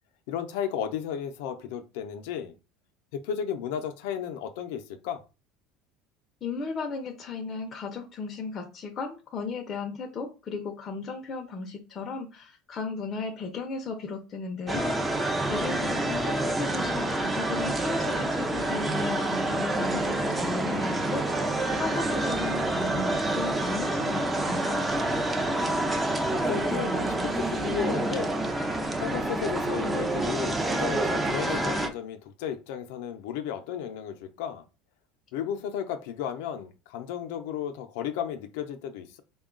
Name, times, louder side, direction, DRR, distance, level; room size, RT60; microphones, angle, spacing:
voice 1, 0.3-2.5 3.1-5.2 16.2-16.4 26.3-28.4 29.0-34.6 35.3-39.2, left 9 dB, 80° left, 0.5 m, -34 dB
voice 2, 6.4-21.3 21.7-24.8, left 4 dB, 30° left, 0.6 m, -35 dB
sound 1, 14.7-31.9, right 2 dB, 15° right, 0.5 m, -28 dB
3.6 x 2.3 x 3.7 m
supercardioid pair, 130°, 0 cm